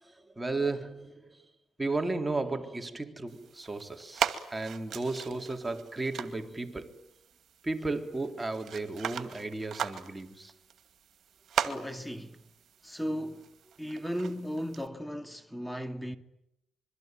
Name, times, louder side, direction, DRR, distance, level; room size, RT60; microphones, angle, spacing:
voice 1, 0.0-1.4 1.8-7.0 7.6-10.5, right 3 dB, 15° right, 3.6 m, -34 dB
sound 1, 3.3-14.9, right 8 dB, 60° right, 2.2 m, -39 dB
voice 2, 11.6-12.4 12.8-16.2, equal, 5° left, 2.4 m, -36 dB
26.0 x 23.5 x 9.3 m
cardioid pair, 90°, 0 cm